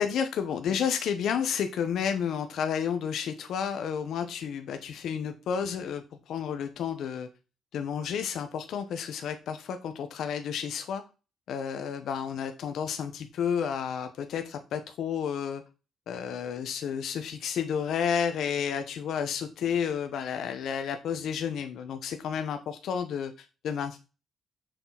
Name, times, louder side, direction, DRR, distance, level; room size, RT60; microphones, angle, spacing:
voice 1, 0.0-7.3 7.7-11.0 11.5-15.6 16.1-24.0, left 7 dB, 75° left, 7 dB, 1.0 m, -31 dB
6.8 x 6.2 x 3.9 m, 0.30 s
cardioid pair, 90°, 0 cm